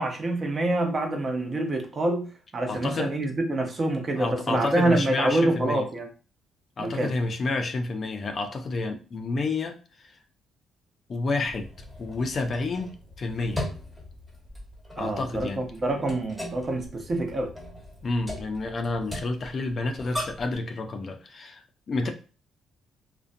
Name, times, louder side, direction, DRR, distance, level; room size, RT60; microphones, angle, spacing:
voice 1, 0.0-6.1 6.8-7.1 15.0-17.5, right 2 dB, 35° right, 3 dB, 0.6 m, -26 dB
voice 2, 2.7-3.1 4.2-5.9 6.8-10.1 11.1-11.7 12.0-13.7 15.0-15.6 18.0-22.1, left 3 dB, 45° left, 6 dB, 0.4 m, -30 dB
sound 1, 11.4-20.6, left 1 dB, ahead, 1.0 m, -39 dB
2.4 x 2.1 x 2.5 m, 0.34 s
cardioid pair, 90°, 0 cm